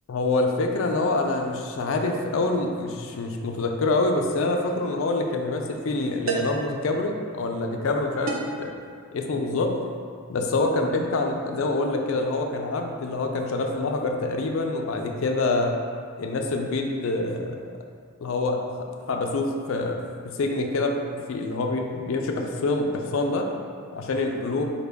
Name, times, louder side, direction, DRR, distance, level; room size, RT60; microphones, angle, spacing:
voice 1, 0.1-8.7 9.1-9.7 10.3-15.8 16.2-17.7 18.2-18.6 19.1-23.5 23.9-24.6, left 2 dB, 60° left, 3 dB, 0.4 m, -26 dB
sound 1, 4.6-4.9 6.3-6.7 8.3-8.6, right 4 dB, 60° right, 0.5 m, -30 dB
4.9 x 2.2 x 3.4 m, 2.1 s
head